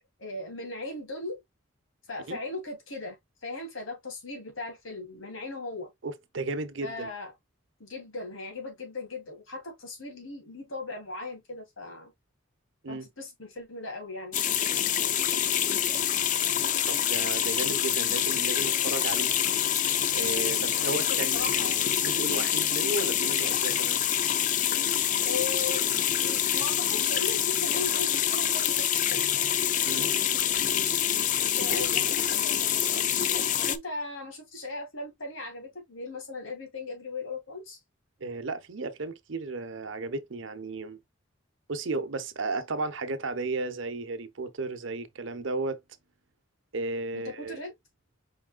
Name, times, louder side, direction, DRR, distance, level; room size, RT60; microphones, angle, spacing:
voice 1, 0.2-1.4 2.1-3.2 3.4-5.9 6.8-7.3 7.8-12.1 12.9-15.4 20.7-22.0 25.2-29.5 31.3-37.8 47.1-47.7, left 3 dB, 85° left, 2.7 m, -38 dB
voice 2, 6.0-7.1 12.8-13.1 16.8-19.3 20.1-24.0 29.8-30.1 31.7-31.9 38.2-41.0 41.7-45.8 46.7-47.6, right 3 dB, 70° right, 0.8 m, -34 dB
sound 1, 14.3-33.8, left 10 dB, 40° left, 0.4 m, -26 dB
5.0 x 4.8 x 2.2 m
head